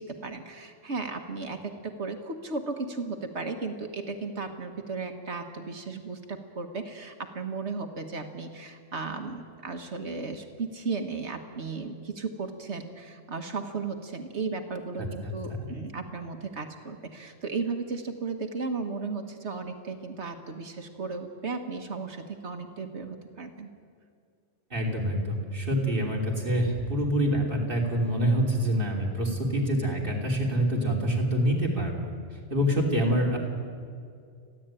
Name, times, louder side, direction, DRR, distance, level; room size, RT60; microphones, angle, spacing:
voice 1, 0.0-23.7 32.6-32.7, right 4 dB, 60° right, 6 dB, 1.6 m, -35 dB
voice 2, 15.0-15.3 15.6-15.7 24.7-31.9 32.5-33.4, equal, 40° right, -1 dB, 3.4 m, -26 dB
29.5 x 11.0 x 9.0 m, 2.2 s
omnidirectional pair, 1.3 m